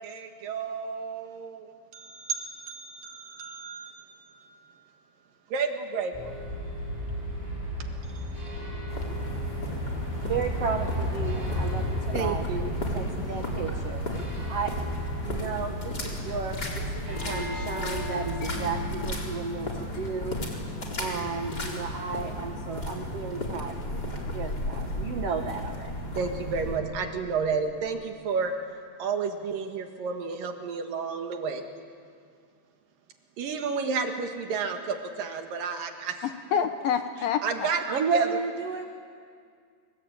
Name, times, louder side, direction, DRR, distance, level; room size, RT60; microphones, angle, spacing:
voice 1, 0.0-4.7 5.5-6.3 8.1-8.5 12.1-12.7 26.2-28.5 29.0-31.6 33.4-36.2 37.4-37.8 38.1-38.3, right 5 dB, 60° right, 5 dB, 3.0 m, -32 dB
sound 1, 6.1-19.0, equal, 5° right, 7.9 m, -33 dB
sound 2, 8.9-26.8, left 1 dB, 25° left, 4.1 m, -35 dB
voice 2, 10.0-12.5 12.9-14.0 14.5-14.7 15.2-20.6 21.0-24.0 24.3-25.9 37.9-38.9, right 5 dB, 75° right, 5 dB, 1.4 m, -33 dB
Mallet percussion, 18.4-25.8, left 10 dB, 50° left, 5.0 m, -48 dB
voice 3, 36.2-37.8, left 7 dB, 75° left, 8 dB, 2.2 m, -28 dB
29.0 x 23.5 x 8.8 m, 2.2 s
omnidirectional pair, 4.9 m